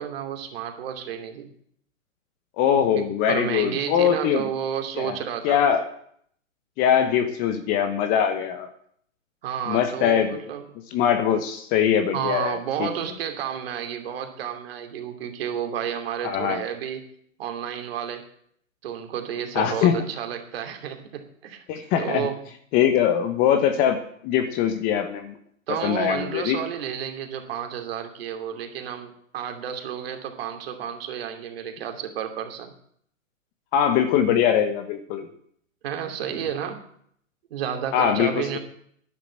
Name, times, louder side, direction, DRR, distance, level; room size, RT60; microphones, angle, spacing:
voice 1, 0.0-1.5 2.9-5.6 9.4-10.6 12.1-17.0 17.4-18.2 18.8-21.6 22.0-22.4 25.7-32.7 35.8-36.8 37.5-38.6, right 9 dB, 45° right, 5 dB, 2.7 m, -31 dB
voice 2, 2.6-4.5 5.0-5.2 5.4-5.8 6.8-8.7 9.7-10.4 10.9-12.9 16.2-16.6 19.5-20.0 21.7-22.3 22.7-24.0 24.2-25.4 25.8-26.6 33.7-35.3 37.9-38.6, left 9 dB, 20° left, 8 dB, 1.0 m, -22 dB
11.0 x 9.7 x 7.5 m, 0.66 s
hypercardioid pair, 135°, 40 cm